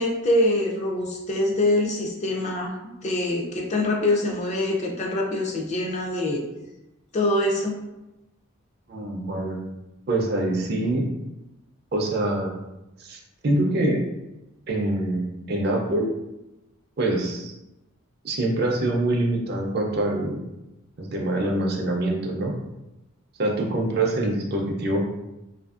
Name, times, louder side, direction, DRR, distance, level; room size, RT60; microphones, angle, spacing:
voice 1, 0.0-2.7 3.0-6.4 7.1-7.8, left 1 dB, 30° left, 0 dB, 0.4 m, -24 dB
voice 2, 8.9-9.6 10.1-11.0 11.9-12.5 13.0-14.0 14.7-16.1 17.0-17.5 18.2-20.4 21.0-22.5 23.4-25.1, right 1 dB, 50° right, 1 dB, 0.4 m, -25 dB
2.7 x 2.5 x 2.3 m, 0.97 s
head